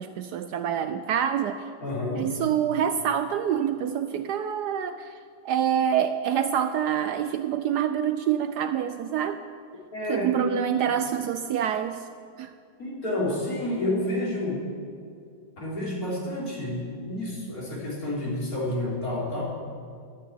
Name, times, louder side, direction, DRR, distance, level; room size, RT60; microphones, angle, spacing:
voice 1, 0.0-1.6 2.1-5.2 5.4-9.4 10.1-12.0 12.4-12.5, right 9 dB, 70° right, 10 dB, 1.0 m, -26 dB
voice 2, 1.8-2.3 9.9-10.5 12.8-14.6 15.6-19.4, left 1 dB, 50° left, -5 dB, 4.1 m, -29 dB
12.0 x 9.3 x 9.9 m, 2.3 s
omnidirectional pair, 2.0 m